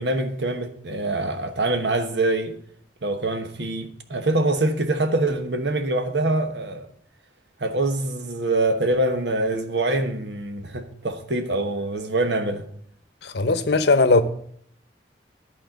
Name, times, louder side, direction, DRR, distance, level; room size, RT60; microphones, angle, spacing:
voice 1, 0.0-2.5 3.0-6.9 7.6-12.6, right 2 dB, 75° right, 1.2 m, -24 dB
voice 2, 13.2-14.2, left 3 dB, 65° left, 0.8 m, -18 dB
11.5 x 4.4 x 7.7 m
head